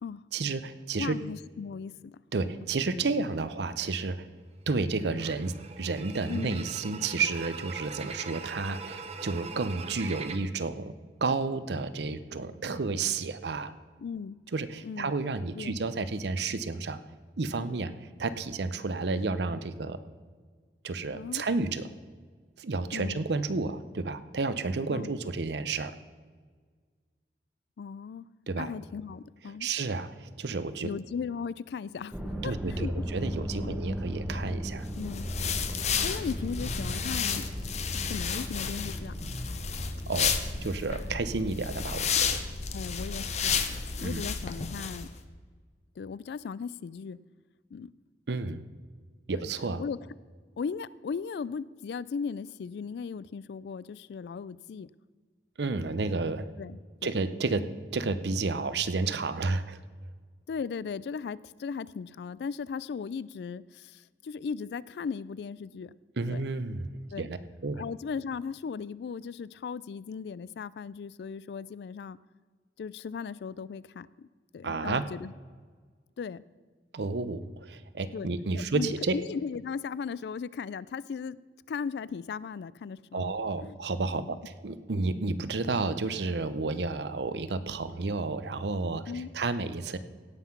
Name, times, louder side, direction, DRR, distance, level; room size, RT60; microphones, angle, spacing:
voice 1, 0.3-1.2 2.3-4.3 4.7-10.9 11.2-13.7 14.5-17.0 17.4-17.9 18.2-20.0 20.8-21.9 22.6-26.0 28.5-28.7 29.6-30.9 32.4-34.9 40.1-42.4 44.0-44.2 48.3-48.6 49.3-49.8 55.6-56.5 57.0-57.7 57.9-59.8 66.2-67.4 67.6-67.8 74.6-75.0 76.9-79.1 83.1-90.0, right 3 dB, 70° right, 13 dB, 0.6 m, -31 dB
voice 2, 1.0-2.2 6.3-6.6 14.0-14.4 14.8-15.1 15.6-15.7 21.1-21.4 22.9-23.2 24.9-25.2 27.8-28.3 28.5-29.7 30.8-32.2 32.4-32.9 33.6-33.8 35.0-35.2 36.0-37.5 37.9-39.1 42.7-43.6 44.0-45.1 46.0-47.2 47.7-47.9 49.3-49.4 49.8-50.0 50.6-54.9 56.6-57.1 60.5-65.9 66.3-66.4 67.1-67.3 67.8-72.2 72.8-74.3 74.5-75.3 76.2-76.4 78.1-81.4 81.7-83.4 83.6-83.8 84.2-84.4 89.1-89.3, left 6 dB, 65° left, 20 dB, 0.3 m, -37 dB
sound 1, 3.8-4.1 4.8-10.4, right 5 dB, 35° right, 0.8 m, -42 dB
sound 2, 32.1-44.3 44.6-45.2, equal, 5° right, 1.2 m, -38 dB
sound 3, 34.9-45.1, left 6 dB, 40° left, 0.8 m, -32 dB
17.0 x 5.8 x 5.9 m, 1.5 s
head